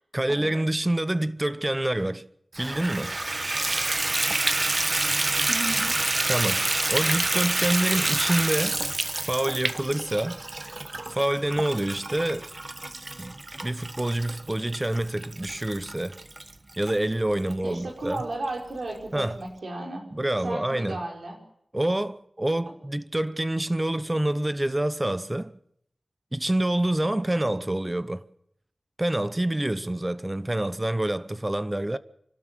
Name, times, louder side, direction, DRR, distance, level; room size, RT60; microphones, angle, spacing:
voice 1, 0.1-2.3 2.6-3.2 6.3-8.8 9.2-10.4 11.1-12.5 13.2-13.4 13.6-16.2 16.8-18.2 19.1-19.4 20.1-21.1 21.7-25.6 26.3-28.2 29.0-32.0, right 1 dB, 20° right, 0.8 m, -27 dB
Water tap faucet / Bathtub (filling or washing), 2.5-16.9 17.5-17.6 18.1-18.2 18.5-18.6, right 2 dB, 40° right, 1.2 m, -28 dB
voice 2, 5.5-5.9 17.6-20.0 20.4-21.4, right 2 dB, 80° right, 5.0 m, -34 dB
27.5 x 12.5 x 7.5 m
wide cardioid pair, 70°, 0 cm